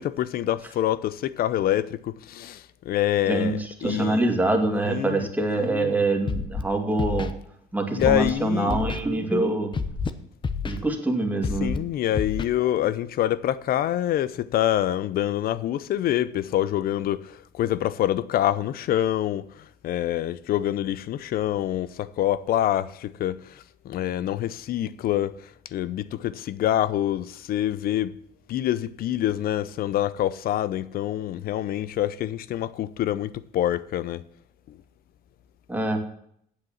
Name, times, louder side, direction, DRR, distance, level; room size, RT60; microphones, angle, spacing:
voice 1, 0.0-4.3 4.9-5.3 7.9-8.8 11.6-28.2 28.5-34.2 34.7-34.8, left 12 dB, 60° left, 0.6 m, -26 dB
voice 2, 3.8-7.3 7.7-9.7 10.6-11.7 35.7-36.0, right 2 dB, 10° right, 2.3 m, -24 dB
Scratching (performance technique), 6.3-6.6 7.0-7.3 8.0-8.3 8.7-9.0 9.7-10.1 10.4-10.8 11.4-11.8 12.1-12.4, left 5 dB, 30° left, 0.9 m, -28 dB
8.8 x 7.8 x 7.2 m
cardioid pair, 110°, 17 cm